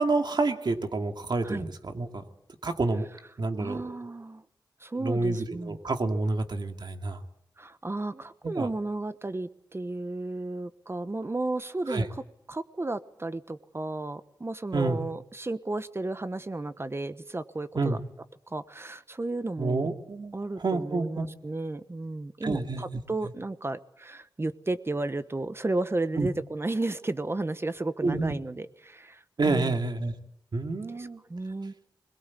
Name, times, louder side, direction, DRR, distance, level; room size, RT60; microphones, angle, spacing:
voice 1, 0.0-2.2 2.6-3.1 3.4-4.0 5.0-7.2 8.4-8.7 11.9-12.1 14.7-15.0 17.8-18.0 19.6-21.3 22.4-23.0 26.2-26.3 28.0-28.4 29.4-30.1 30.5-31.2, right 3 dB, 65° right, 5 dB, 2.4 m, -28 dB
voice 2, 3.6-4.4 4.8-5.8 7.6-12.2 12.5-18.0 18.5-19.9 20.3-29.8 31.0-31.7, right 2 dB, 30° right, 12 dB, 1.1 m, -33 dB
21.5 x 20.5 x 8.4 m, 0.80 s
wide cardioid pair, 75°, 8 cm